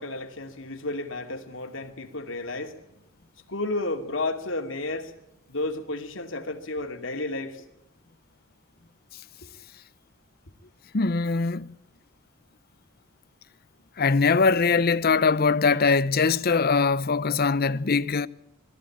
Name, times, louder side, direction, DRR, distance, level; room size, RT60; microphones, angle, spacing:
voice 1, 0.0-2.8 3.5-5.1 5.5-7.6 9.4-9.5, left 2 dB, 70° left, 2.7 m, -32 dB
voice 2, 10.9-11.7 14.0-18.3, left 4 dB, 50° left, 0.7 m, -22 dB
22.5 x 14.5 x 8.7 m
head